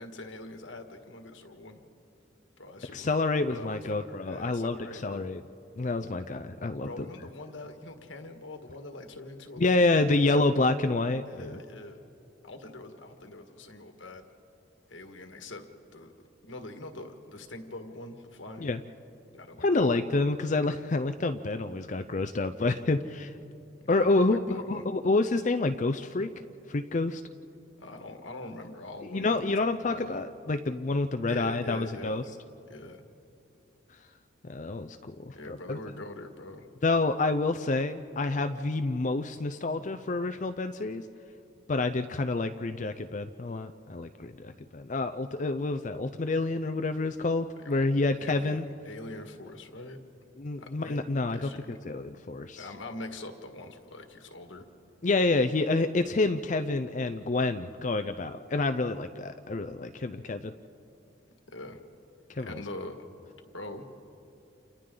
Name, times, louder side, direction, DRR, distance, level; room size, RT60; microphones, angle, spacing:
voice 1, 0.0-1.8 2.6-3.1 3.5-5.3 6.8-10.1 10.4-10.7 11.3-12.0 12.4-14.3 14.9-15.7 15.9-16.1 16.4-18.7 19.3-20.0 23.8-24.9 27.8-29.4 29.8-30.2 31.3-32.2 32.7-33.0 35.3-36.7 47.6-47.9 48.2-50.0 50.6-51.8 52.6-54.6 61.5-61.8 62.4-63.0 63.5-63.9, left 2 dB, 75° left, 5 dB, 1.7 m, -43 dB
voice 2, 2.9-4.8 5.0-5.4 5.8-7.0 9.6-11.5 18.6-18.8 19.6-23.3 23.9-26.3 26.7-27.2 29.1-32.2 34.5-35.4 35.7-35.8 36.8-41.0 41.7-48.7 50.4-52.7 55.0-60.5 62.3-62.6, left 2 dB, 40° left, 9 dB, 0.5 m, -28 dB
29.5 x 28.5 x 3.9 m, 2.7 s
head